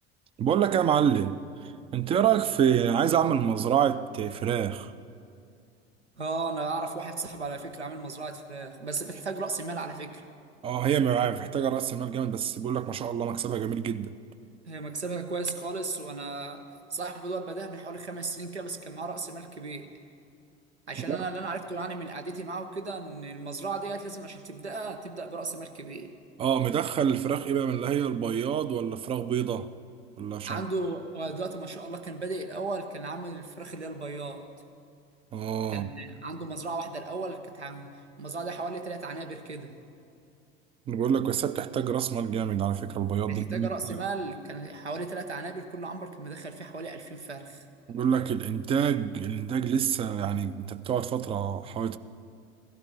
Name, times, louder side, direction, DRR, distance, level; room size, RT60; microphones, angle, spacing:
voice 1, 0.4-4.9 10.6-14.1 21.1-21.2 26.4-29.7 30.2-30.6 35.3-35.9 40.9-44.0 47.9-52.0, right 8 dB, 20° right, 0.3 m, -27 dB
voice 2, 6.2-10.2 14.7-19.9 20.9-26.2 30.4-34.5 35.7-39.8 43.3-47.7, right 3 dB, 85° right, 0.9 m, -35 dB
16.0 x 12.0 x 5.3 m
figure-of-eight pair, 70°, 33 cm